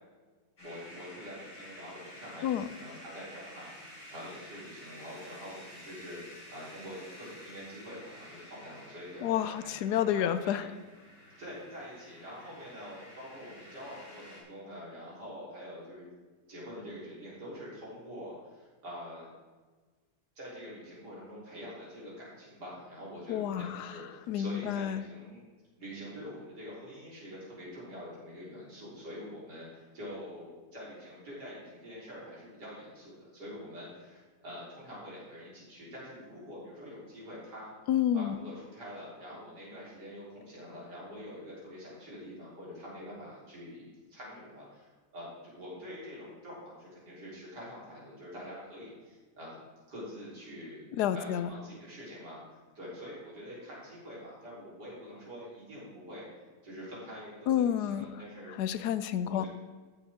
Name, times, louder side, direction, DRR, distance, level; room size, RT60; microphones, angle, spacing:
sound 1, 0.6-14.4, equal, 55° left, 3.6 m, -51 dB
voice 1, 0.6-6.2 6.5-9.7 10.1-10.7 11.4-16.1 16.5-19.3 20.4-25.4 25.8-37.7 38.1-49.6 49.9-50.8 51.1-56.3 56.6-58.5 59.3-59.5, equal, 85° right, -7 dB, 4.4 m, -45 dB
voice 2, 9.2-10.6 23.3-23.9 24.3-25.0 37.9-38.4 50.9-51.5 57.5-58.1 58.6-59.5, left 10 dB, 80° left, 13 dB, 1.1 m, -29 dB
14.5 x 7.4 x 3.6 m, 1.4 s
omnidirectional pair, 1.7 m